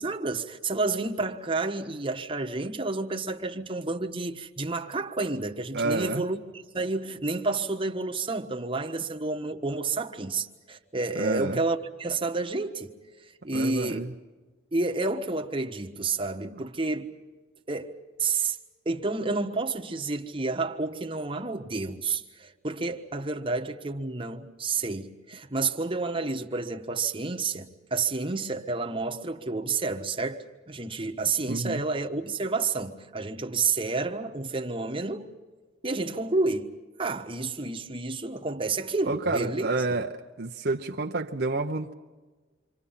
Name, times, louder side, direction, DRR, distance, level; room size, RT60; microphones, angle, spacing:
voice 1, 0.0-12.9 13.2-14.0 14.7-17.1 17.7-18.6 18.8-35.3 35.8-39.7, right 3 dB, 25° right, 1.3 m, -30 dB
voice 2, 5.7-6.2 11.2-11.6 13.5-14.1 16.5-16.6 31.5-31.8 39.1-40.1 40.4-41.9, right 2 dB, 55° right, 0.9 m, -29 dB
28.0 x 25.0 x 5.7 m
head